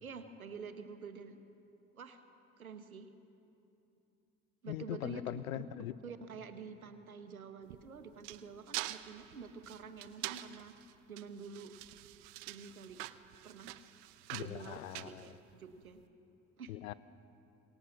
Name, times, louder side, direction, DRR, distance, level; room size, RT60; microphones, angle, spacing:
voice 1, 0.0-1.4 1.9-2.2 2.6-3.1 4.6-5.6 6.0-10.7 11.1-11.7 12.5-13.0 13.4-13.7 14.3-16.0 16.6-16.7, right 5 dB, 90° right, 9 dB, 1.3 m, -48 dB
voice 2, 4.7-5.9 14.3-15.2 16.7-16.9, left 13 dB, 80° left, 17 dB, 0.8 m, -41 dB
sound 1, 7.6-15.9, right 18 dB, 70° right, 0.9 m, -46 dB
26.5 x 26.5 x 7.3 m, 2.8 s
figure-of-eight pair, 50°, 41 cm